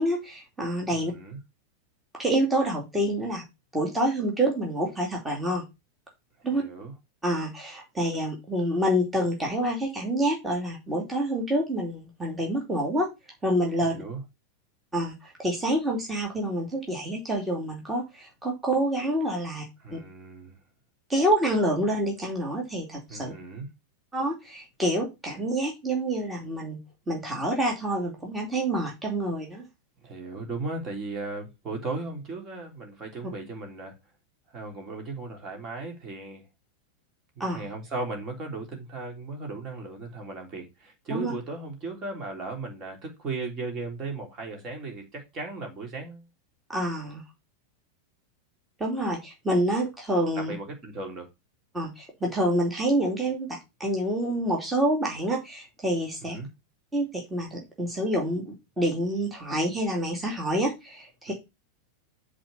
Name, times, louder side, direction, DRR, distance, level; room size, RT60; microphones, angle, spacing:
voice 1, 0.0-1.1 2.1-3.4 3.7-5.6 6.4-6.6 7.2-13.1 13.4-14.0 14.9-19.6 19.9-20.0 21.1-23.3 24.1-26.8 27.1-29.7 37.4-37.6 41.1-41.3 46.7-47.2 48.8-50.6 51.7-56.4 56.9-61.3, right 1 dB, 10° right, 2.6 m, -27 dB
voice 2, 0.9-1.4 6.5-6.9 13.8-14.2 19.8-20.5 23.1-23.7 30.0-34.0 34.5-36.4 37.4-46.3 50.4-51.3 56.3-56.5 61.3-61.4, right 3 dB, 30° right, 3.5 m, -36 dB
7.6 x 4.3 x 6.7 m
figure-of-eight pair, 90°, 0 cm